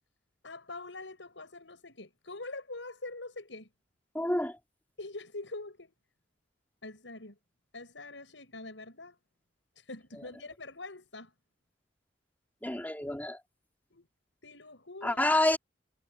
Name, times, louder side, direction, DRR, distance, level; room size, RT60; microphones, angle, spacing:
voice 1, 0.4-3.7 5.0-5.9 6.8-7.4 7.7-9.2 9.8-11.3 13.9-14.1 14.4-15.2, left 2 dB, 90° left, 6.4 m, -44 dB
voice 2, 4.1-4.6 12.6-13.4 15.0-15.6, left 1 dB, 10° left, 3.1 m, -28 dB
head